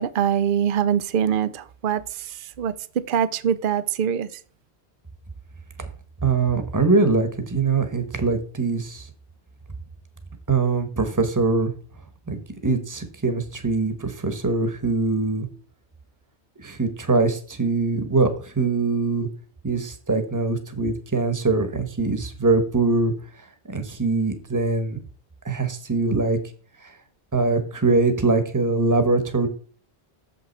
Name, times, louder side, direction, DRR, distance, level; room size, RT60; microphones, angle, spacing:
voice 1, 0.0-4.4, right 8 dB, 55° right, 15 dB, 0.7 m, -24 dB
voice 2, 6.2-9.1 10.5-11.7 12.3-15.5 16.6-19.3 19.6-23.1 23.6-25.0 25.4-26.4 26.8-26.9 27.3-29.5, right 3 dB, 15° right, 8 dB, 1.1 m, -22 dB
7.2 x 5.6 x 4.2 m, 0.43 s
omnidirectional pair, 1.1 m